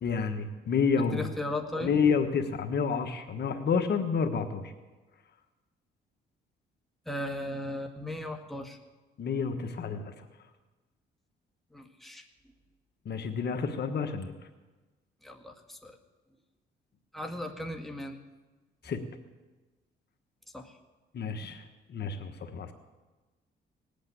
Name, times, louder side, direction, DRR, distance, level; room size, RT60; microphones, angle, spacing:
voice 1, 0.0-1.3 1.8-4.6 9.2-10.1 13.0-14.3 18.8-19.0 21.1-21.6 21.9-22.7, left 5 dB, 55° left, 7 dB, 1.4 m, -29 dB
voice 2, 1.0-2.0 7.1-8.8 11.7-12.2 15.2-16.0 17.1-18.2 20.5-20.7, left 1 dB, ahead, 2 dB, 1.8 m, -37 dB
19.5 x 8.6 x 8.3 m, 1.2 s
cardioid pair, 90°, 20 cm